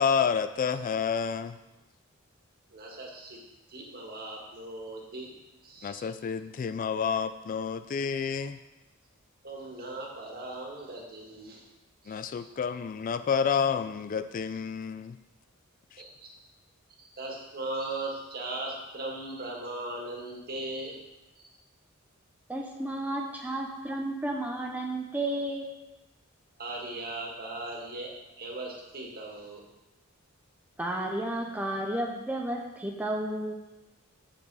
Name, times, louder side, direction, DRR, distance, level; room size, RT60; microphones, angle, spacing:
voice 1, 0.0-1.6 5.8-8.6 12.1-15.2 15.9-16.0, left 6 dB, 40° left, 11 dB, 0.3 m, -29 dB
voice 2, 2.7-3.4 3.7-5.3 5.6-6.0 9.4-11.6 12.0-12.5 16.0-16.3 17.0-21.0 26.6-28.1 28.4-29.6, right 2 dB, 45° right, -1 dB, 1.9 m, -38 dB
voice 3, 22.5-25.7 30.8-33.6, right 1 dB, 10° right, 0 dB, 0.7 m, -32 dB
7.8 x 7.5 x 4.8 m, 1.0 s
head